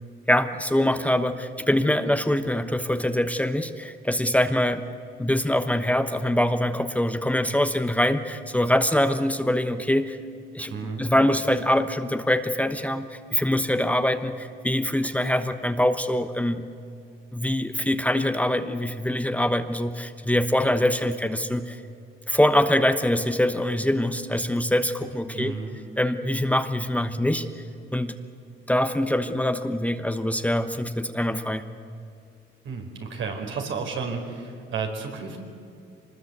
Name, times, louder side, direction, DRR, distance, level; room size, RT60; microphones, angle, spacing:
voice 1, 0.3-4.8 5.2-10.2 10.5-16.6 17.3-21.8 22.3-25.6 26.0-27.5 27.9-28.1 28.7-31.6, left 1 dB, 5° left, 8 dB, 1.1 m, -24 dB
voice 2, 10.7-11.1 25.3-25.8 32.6-35.4, right 5 dB, 75° right, 3 dB, 4.6 m, -32 dB
24.5 x 20.5 x 8.1 m, 2.4 s
cardioid pair, 90°, 20 cm